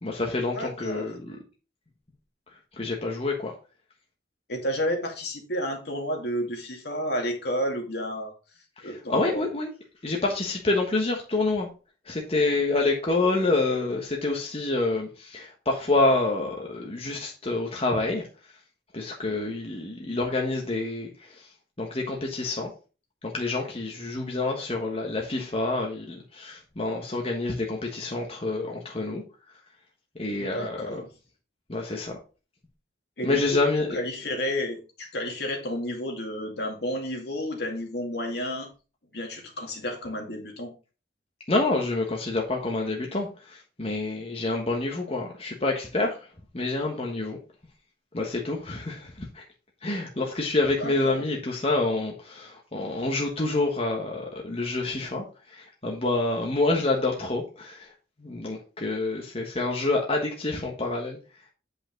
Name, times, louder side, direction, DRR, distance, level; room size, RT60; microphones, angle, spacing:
voice 1, 0.0-1.4 2.7-3.5 8.8-9.7 10.0-11.7 12.0-18.3 18.9-21.5 21.8-22.7 23.2-29.2 30.2-31.0 31.7-32.2 33.2-34.0 41.5-46.3 46.5-47.4 48.1-49.4 49.8-57.9 58.2-61.2, left 2 dB, 35° left, 1.3 m, -27 dB
voice 2, 0.5-1.1 4.5-8.3 8.8-9.5 30.4-31.1 33.2-33.4 33.9-38.7 39.1-40.7 50.8-51.2, equal, 65° left, 2.2 m, -31 dB
8.5 x 5.3 x 3.9 m
head